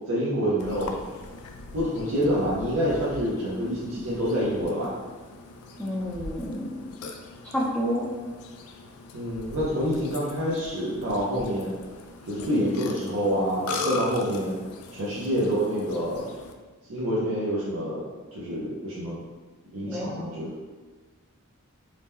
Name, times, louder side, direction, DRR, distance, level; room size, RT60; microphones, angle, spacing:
voice 1, 0.1-0.9 1.7-4.9 9.1-11.7 12.3-14.6 14.9-16.3 16.9-18.0 18.3-19.2 19.7-20.5, equal, 75° right, -7 dB, 0.6 m, -27 dB
Burping eructation, 0.6-16.5, left 3 dB, 90° left, 0.3 m, -40 dB
voice 2, 5.8-6.8 7.5-8.1 19.8-20.3, equal, 5° left, -7 dB, 0.4 m, -29 dB
2.9 x 2.1 x 3.4 m, 1.3 s
head